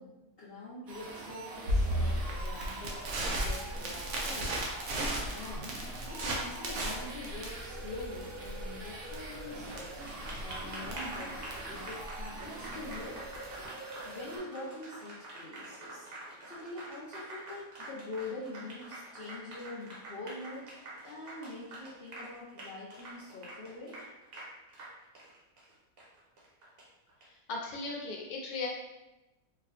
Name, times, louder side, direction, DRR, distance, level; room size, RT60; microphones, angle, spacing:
voice 1, 0.0-4.8 5.3-10.0 10.4-13.2 14.0-16.1 16.4-24.0, left 2 dB, 55° left, -8 dB, 0.7 m, -45 dB
sound 1, 0.9-14.4, right 2 dB, 75° right, 1.0 m, -44 dB
Crackle, 1.7-13.6, right 1 dB, 90° right, 1.2 m, -35 dB
Applause, 9.5-27.2, right 2 dB, 50° right, 0.9 m, -46 dB
voice 2, 27.5-28.7, left 3 dB, 85° left, -1 dB, 1.2 m, -37 dB
4.5 x 2.2 x 2.3 m, 1.0 s
omnidirectional pair, 1.6 m